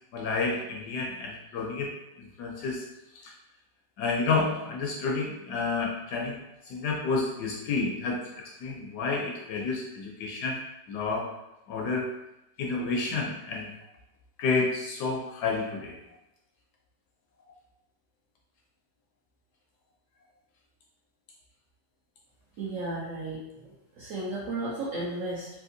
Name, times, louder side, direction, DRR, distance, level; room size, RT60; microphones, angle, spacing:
voice 1, 0.1-2.8 3.2-3.3 4.0-6.4 6.7-10.6 10.9-11.3 11.7-12.1 12.6-13.7 14.4-16.0, left 4 dB, 70° left, 0 dB, 1.0 m, -30 dB
voice 2, 22.6-25.5, right 2 dB, 65° right, -6 dB, 0.8 m, -34 dB
3.4 x 2.8 x 2.6 m, 0.87 s
omnidirectional pair, 2.0 m